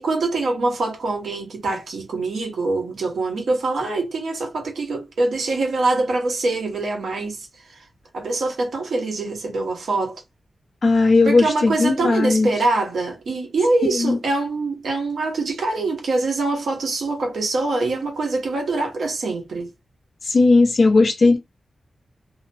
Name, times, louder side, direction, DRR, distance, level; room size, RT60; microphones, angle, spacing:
voice 1, 0.0-7.8 8.1-10.2 11.2-19.7, right 3 dB, 90° right, 1.0 m, -24 dB
voice 2, 10.8-12.5 14.0-14.2 20.2-21.4, left 3 dB, 45° left, 0.8 m, -16 dB
2.9 x 2.1 x 2.6 m
wide cardioid pair, 180°, 0 cm